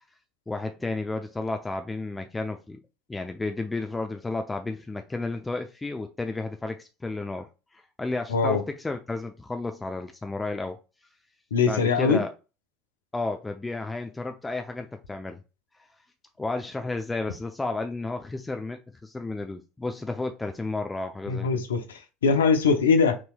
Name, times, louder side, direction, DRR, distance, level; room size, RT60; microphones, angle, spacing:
voice 1, 0.5-2.8 3.1-10.8 11.7-12.3 13.1-15.4 15.8-15.9 16.4-21.6, left 2 dB, 15° left, 0.5 m, -32 dB
voice 2, 8.3-8.6 11.5-12.2 21.3-23.2, left 5 dB, 85° left, 0.7 m, -22 dB
6.0 x 3.1 x 2.3 m
hypercardioid pair, 70°, 0 cm